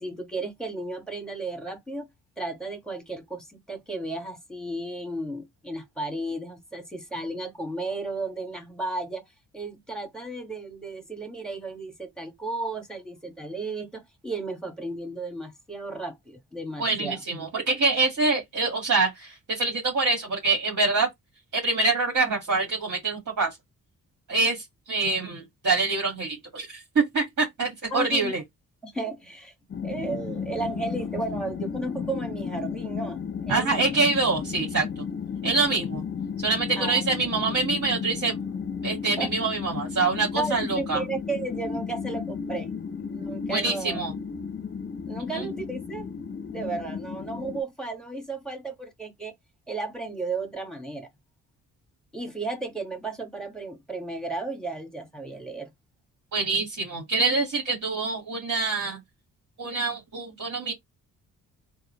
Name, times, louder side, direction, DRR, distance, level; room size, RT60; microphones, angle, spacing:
voice 1, 0.0-2.1 2.4-9.2 9.5-17.2 27.9-28.3 28.8-29.5 29.8-33.9 36.8-37.0 39.2-39.3 40.4-42.7 43.0-44.0 45.1-46.1 46.3-49.3 49.7-51.1 52.1-55.7, right 2 dB, ahead, 1.8 m, -34 dB
voice 2, 16.8-21.1 21.5-23.6 24.3-28.4 33.5-34.9 35.4-36.0 36.4-38.3 38.8-41.0 43.5-44.1 45.3-45.5 56.3-59.0 59.6-60.7, right 3 dB, 55° right, 2.2 m, -25 dB
sound 1, 29.7-47.6, left 6 dB, 35° left, 0.7 m, -34 dB
3.7 x 2.7 x 3.2 m
supercardioid pair, 60°, 35 cm